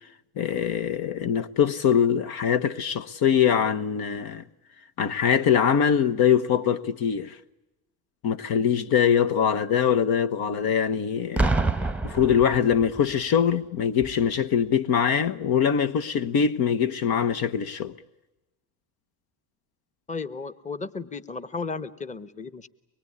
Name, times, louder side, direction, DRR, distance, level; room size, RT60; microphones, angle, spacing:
voice 1, 0.4-4.4 5.0-7.4 8.2-11.5 12.0-17.9, left 8 dB, 55° left, 1.2 m, -23 dB
Boom, 11.4-13.1 14.0-14.2, right 3 dB, 5° right, 1.0 m, -26 dB
voice 2, 20.1-22.7, left 4 dB, 15° left, 1.2 m, -34 dB
24.5 x 22.5 x 9.8 m
supercardioid pair, 85°, 43 cm